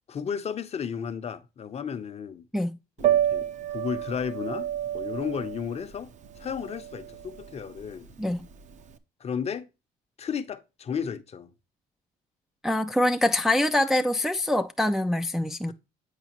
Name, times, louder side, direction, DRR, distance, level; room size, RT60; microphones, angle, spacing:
voice 1, 0.1-2.5 3.1-6.1 6.4-8.1 9.2-9.7 10.2-11.5, left 7 dB, 40° left, 0.7 m, -33 dB
Piano, 3.0-8.9, right 11 dB, 45° right, 0.7 m, -30 dB
voice 2, 12.6-15.7, left 1 dB, 5° right, 0.4 m, -24 dB
8.2 x 4.9 x 3.0 m
cardioid pair, 110°, 17 cm